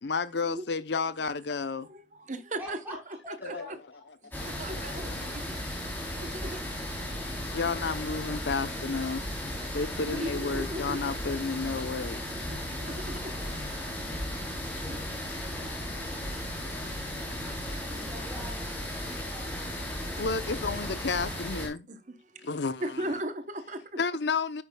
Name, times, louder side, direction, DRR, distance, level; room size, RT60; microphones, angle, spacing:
voice 1, 0.0-1.9 3.4-3.7 7.5-9.3 9.7-12.2 15.3-15.7 16.6-17.3 17.7-17.8 19.2-19.3 20.2-21.9 22.4-23.0 24.0-24.6, left 4 dB, 70° left, 0.7 m, -32 dB
voice 2, 1.8-3.0 3.3-3.8 4.5-5.5 6.2-6.6 10.0-11.0 12.5-13.4 14.1-15.0 16.0-16.1 17.3-18.3 20.1-20.2 21.9-22.5 22.8-24.0, right 1 dB, 40° right, 0.9 m, -39 dB
voice 3, 2.6-3.0 3.2-3.7 13.2-13.5 14.7-16.2 18.1-19.7, equal, 10° right, 4.7 m, -46 dB
sound 1, 4.3-21.7, left 1 dB, 10° left, 3.3 m, -35 dB
10.0 x 8.6 x 2.3 m
head